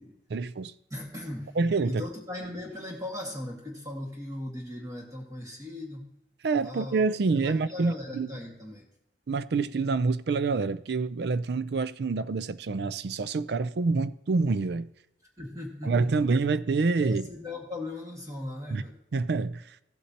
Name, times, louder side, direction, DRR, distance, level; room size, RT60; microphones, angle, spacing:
voice 1, 0.3-0.7 1.6-2.0 6.4-8.3 9.3-14.9 15.8-17.3 18.7-18.8 19.1-19.6, right 4 dB, 65° right, 0.4 m, -27 dB
voice 2, 0.9-1.6 1.8-6.1 6.6-7.1 7.3-8.8 15.4-16.2 17.0-19.0, left 1 dB, 20° right, 1.8 m, -38 dB
15.0 x 8.3 x 2.9 m
head